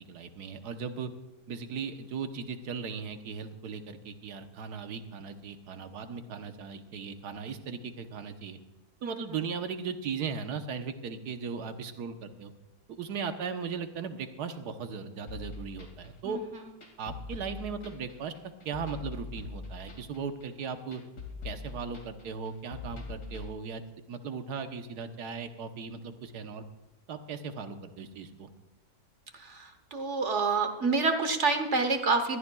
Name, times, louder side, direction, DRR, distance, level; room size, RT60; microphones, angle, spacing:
voice 1, 0.1-1.1 1.5-8.6 9.0-12.5 12.9-16.4 17.0-18.3 18.6-21.0 21.4-23.8 24.1-26.6 27.1-28.5, right 5 dB, 75° right, 7 dB, 1.5 m, -37 dB
sound 1, 15.3-23.5, left 4 dB, 85° left, 3.1 m, -43 dB
voice 2, 29.9-32.4, right 4 dB, 50° right, 7 dB, 1.3 m, -27 dB
21.0 x 13.5 x 2.3 m, 0.97 s
omnidirectional pair, 1.8 m